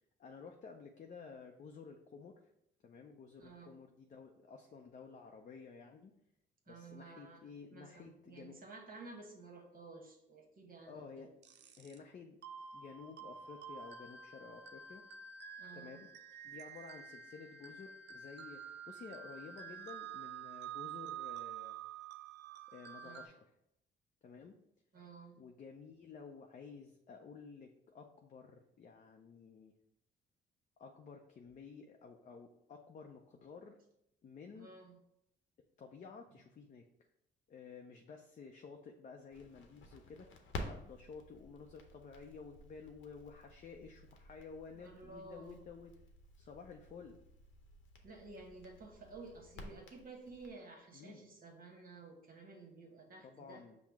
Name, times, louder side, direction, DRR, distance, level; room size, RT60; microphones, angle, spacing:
voice 1, 0.2-2.4 2.8-6.1 6.7-8.6 10.9-11.3 11.8-12.4 12.7-15.0 15.7-16.1 16.4-21.8 22.7-23.5 24.2-24.6 25.4-29.7 30.8-33.8 34.2-34.7 35.8-36.9 37.5-45.9 46.4-47.2 50.9-51.2 53.2-53.8, left 5 dB, 40° left, 3 dB, 0.5 m, -53 dB
voice 2, 3.4-3.7 6.7-11.3 15.6-16.0 23.0-23.2 24.9-25.4 34.5-35.0 44.7-45.6 48.0-53.6, right 3 dB, 45° right, 1 dB, 1.1 m, -53 dB
sound 1, 11.4-12.0 12.4-23.3, right 8 dB, 65° right, 0.5 m, -49 dB
Crackle, 39.3-50.5, left 2 dB, 75° left, 0.8 m, -52 dB
5.6 x 2.0 x 4.6 m, 0.78 s
cardioid pair, 90°, 20 cm